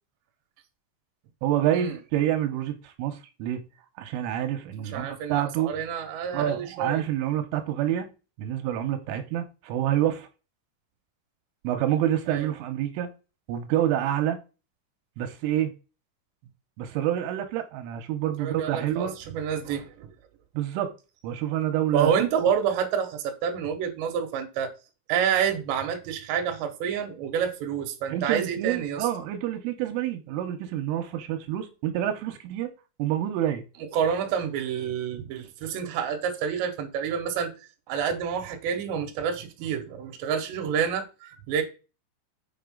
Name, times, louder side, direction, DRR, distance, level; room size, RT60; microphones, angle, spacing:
voice 1, 1.4-3.6 4.0-5.7 6.3-8.1 8.4-10.3 11.6-13.1 13.5-14.4 15.2-15.7 16.8-19.1 20.5-20.9 21.2-22.2 28.1-32.7 33.0-33.6, right 11 dB, 90° right, 3.4 m, -27 dB
voice 2, 4.9-7.0 12.3-12.5 18.4-20.1 21.9-24.7 25.1-29.0 33.9-37.5 37.9-41.6, right 7 dB, 70° right, 3.3 m, -28 dB
7.9 x 5.6 x 3.8 m
omnidirectional pair, 5.7 m